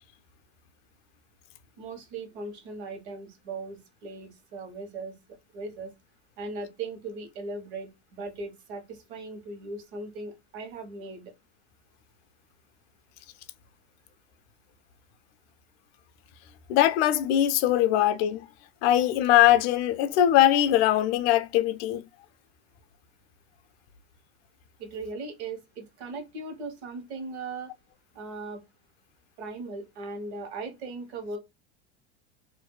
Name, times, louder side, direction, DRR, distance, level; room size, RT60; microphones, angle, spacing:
voice 1, 1.8-5.2 5.5-5.9 6.4-11.3 24.8-27.7 28.1-28.6 29.4-31.4, right 3 dB, 70° right, 1.1 m, -38 dB
voice 2, 16.7-18.4 18.8-22.0, left 12 dB, 60° left, 0.4 m, -21 dB
2.6 x 2.2 x 2.2 m
supercardioid pair, 130°, 34 cm